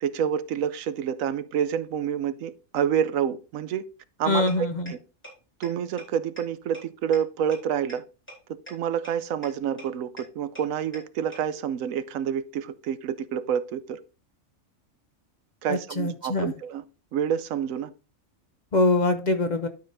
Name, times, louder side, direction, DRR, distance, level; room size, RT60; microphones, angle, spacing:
voice 1, 0.0-3.8 4.2-5.0 5.6-8.0 8.7-14.0 15.6-16.8 17.1-17.9, right 8 dB, 80° right, 1.0 m, -28 dB
voice 2, 4.3-4.8 15.7-16.5 18.7-19.7, left 2 dB, 45° left, 0.7 m, -23 dB
sound 1, 4.5-4.6 4.9-5.0 5.2-5.3 5.6-5.7 6.0-6.1 6.4-6.5 6.7-6.8 7.1-7.2 7.5-7.6 7.9-8.0 8.3-8.4 8.7-8.8 9.0-9.1 9.4-9.5 9.8-9.9 10.2-10.3 10.6-10.7 10.9-11.0 11.3-11.4, equal, 10° left, 3.7 m, -41 dB
12.0 x 5.2 x 2.6 m
omnidirectional pair, 1.4 m